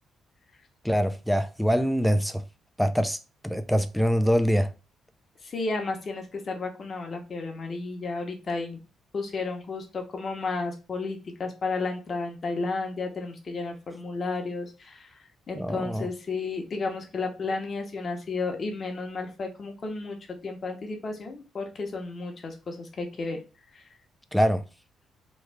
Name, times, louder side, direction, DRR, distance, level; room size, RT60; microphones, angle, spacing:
voice 1, 0.8-2.4 2.8-3.2 3.4-4.7 15.6-16.1 24.3-24.6, equal, ahead, 0.4 m, -24 dB
voice 2, 5.4-8.8 9.1-15.2 15.5-23.4 23.7-23.8, left 3 dB, 45° left, 0.9 m, -32 dB
3.1 x 2.3 x 3.3 m
cardioid pair, 90°, 0 cm